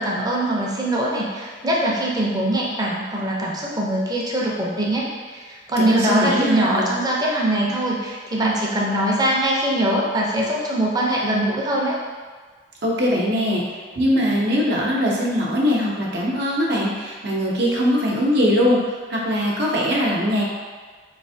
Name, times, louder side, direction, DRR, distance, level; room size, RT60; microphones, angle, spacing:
voice 1, 0.0-12.0, right 1 dB, 20° right, -4 dB, 0.6 m, -22 dB
voice 2, 5.8-6.9 12.8-20.4, equal, 65° right, -4 dB, 0.8 m, -21 dB
4.2 x 3.1 x 2.7 m, 1.5 s
head